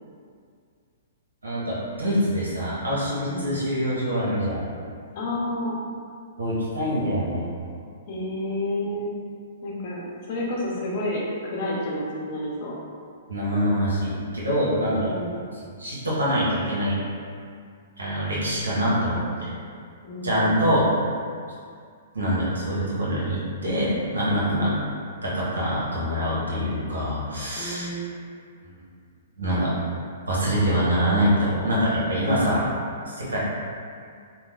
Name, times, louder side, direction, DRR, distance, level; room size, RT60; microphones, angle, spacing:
voice 1, 1.4-4.7 6.4-7.5 13.3-15.1 15.8-17.0 18.0-19.5 20.2-20.9 22.1-24.7 25.2-27.9 29.4-29.7 30.3-32.7 33.1-33.4, equal, 90° right, -8 dB, 1.1 m, -24 dB
voice 2, 3.3-3.6 5.1-5.8 8.1-9.1 9.6-10.0 10.3-12.7 15.0-15.4 20.0-20.6 24.5-24.7 27.6-28.2, left 1 dB, 50° left, -4 dB, 0.8 m, -30 dB
2.9 x 2.2 x 3.4 m, 2.2 s
hypercardioid pair, 120°, 0 cm